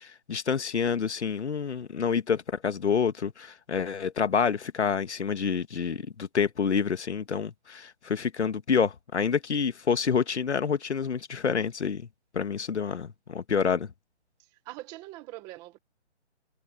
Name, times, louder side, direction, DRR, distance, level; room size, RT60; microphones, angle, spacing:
voice 1, 0.0-12.0 12.3-13.9, left 6 dB, 70° left, 1.8 m, -28 dB
voice 2, 14.4-15.8, right 18 dB, 10° right, 1.5 m, -43 dB
hypercardioid pair, 170°, 35 cm